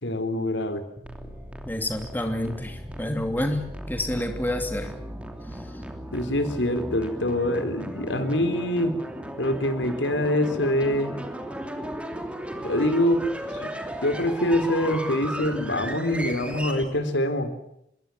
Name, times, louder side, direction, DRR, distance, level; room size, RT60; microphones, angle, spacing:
voice 1, 0.0-0.8 6.1-9.0 9.4-11.1 12.6-13.2 13.6-13.7 14.0-17.5, left 1 dB, 80° left, 10 dB, 3.9 m, -25 dB
sound 1, 1.0-16.8, equal, 5° right, 2.9 m, -36 dB
voice 2, 1.6-4.9 5.5-5.6, left 1 dB, 10° left, 5 dB, 2.8 m, -29 dB
25.5 x 22.0 x 7.6 m, 0.76 s
head